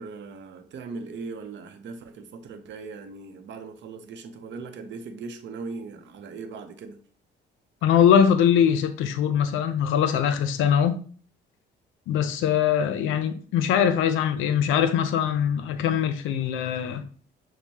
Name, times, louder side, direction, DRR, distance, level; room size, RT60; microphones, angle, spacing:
voice 1, 0.0-7.0, right 4 dB, 65° right, 0.6 m, -39 dB
voice 2, 7.8-11.0 12.1-17.0, left 8 dB, 90° left, 0.5 m, -22 dB
6.2 x 2.1 x 2.7 m
cardioid pair, 90°, 20 cm